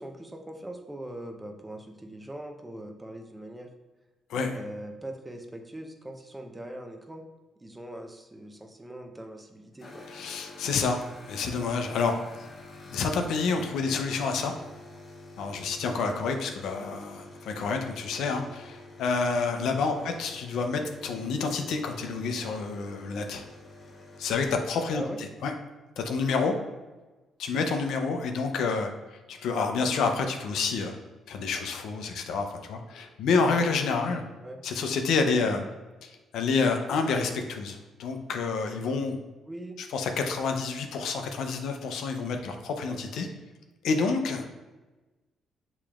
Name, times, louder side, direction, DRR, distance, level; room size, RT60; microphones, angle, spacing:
voice 1, 0.0-3.7 4.5-7.2 7.6-10.0 19.9-20.1 24.9-25.2 34.4-34.6 39.5-39.8, right 1 dB, 15° right, 4 dB, 0.6 m, -41 dB
sound 1, 9.8-24.5, left 2 dB, 45° left, 0.8 m, -48 dB
voice 2, 10.1-11.0 11.3-12.2 12.9-14.5 15.4-23.4 24.2-25.0 25.4-25.5 26.0-26.5 27.4-28.9 29.3-31.0 31.3-34.2 34.6-35.7 36.0-39.2 39.9-43.3 43.8-44.5, left 4 dB, 80° left, 5 dB, 0.5 m, -28 dB
6.7 x 3.0 x 2.4 m, 1.2 s
cardioid pair, 90°, 0 cm